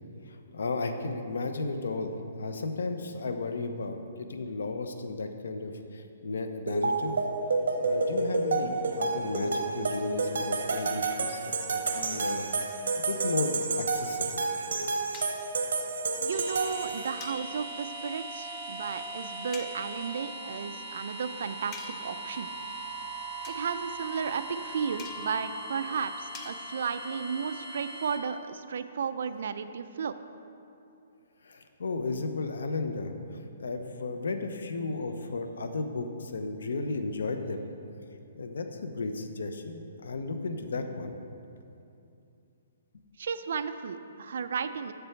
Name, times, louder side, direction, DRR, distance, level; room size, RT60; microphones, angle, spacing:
voice 1, 0.2-7.2 7.8-11.4 11.7-12.5 13.0-14.4 31.4-37.7 38.3-41.1, left 3 dB, 85° left, 7 dB, 0.7 m, -34 dB
sound 1, 6.7-17.3, right 3 dB, 85° right, 0.8 m, -30 dB
sound 2, 15.1-15.5 17.2-17.9 19.5-19.8 21.7-22.2 23.4-23.7 25.0-25.4 26.3-26.6, left 6 dB, 15° left, 0.3 m, -46 dB
voice 2, 16.2-22.5 23.5-30.1 43.2-44.9, right 6 dB, 60° right, 11 dB, 0.4 m, -34 dB
sound 3, 16.3-28.2, right 1 dB, 5° right, 0.8 m, -40 dB
7.0 x 6.7 x 4.4 m, 2.6 s
hypercardioid pair, 175°, 0 cm